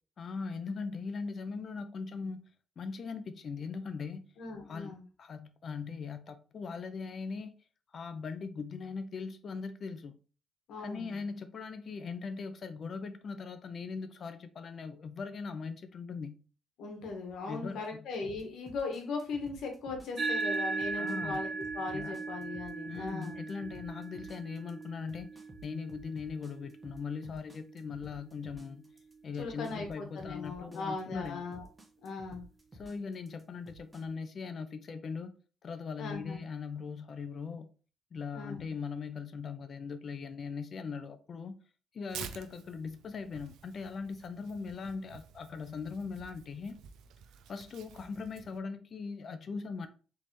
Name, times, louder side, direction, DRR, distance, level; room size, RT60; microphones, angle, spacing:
voice 1, 0.2-2.4 2.8-4.3 4.7-7.5 7.9-10.2 10.8-16.4 17.5-17.8 21.0-21.4 21.9-22.2 22.9-25.3 25.6-28.8 29.2-31.5 32.7-35.3 35.6-37.7 38.1-41.6 41.9-46.8 47.5-49.9, left 5 dB, 50° left, 0.5 m, -40 dB
voice 2, 4.4-5.0 10.7-11.2 16.8-23.4 29.4-31.7 32.0-32.4 36.0-36.4 38.3-38.7, left 4 dB, 75° left, 1.3 m, -39 dB
sound 1, 18.3-34.0, right 2 dB, 20° right, 1.1 m, -53 dB
sound 2, 20.2-28.9, right 4 dB, 35° right, 0.7 m, -39 dB
Tearing, 42.1-48.6, right 8 dB, 85° right, 0.4 m, -50 dB
3.9 x 3.4 x 3.2 m
cardioid pair, 90°, 0 cm